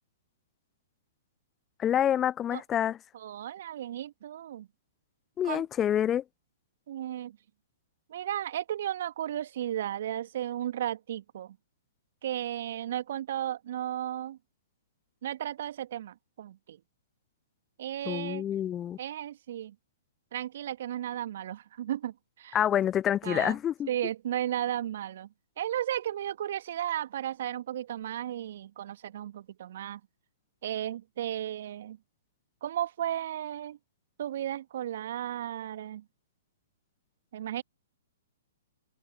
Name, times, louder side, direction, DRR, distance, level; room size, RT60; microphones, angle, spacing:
voice 1, 1.8-3.0 5.4-6.2 18.1-19.0 22.5-23.9, left 10 dB, 20° left, 0.6 m, -27 dB
voice 2, 3.1-4.7 5.4-5.7 6.9-7.4 8.1-11.6 12.2-14.4 15.2-16.8 17.8-18.4 19.0-19.8 20.3-22.6 23.2-23.6 23.9-25.3 25.6-30.0 30.6-32.0 32.6-33.8 34.2-36.0 37.3-37.6, right 11 dB, 55° right, 2.1 m, -34 dB
figure-of-eight pair, 120°, 0 cm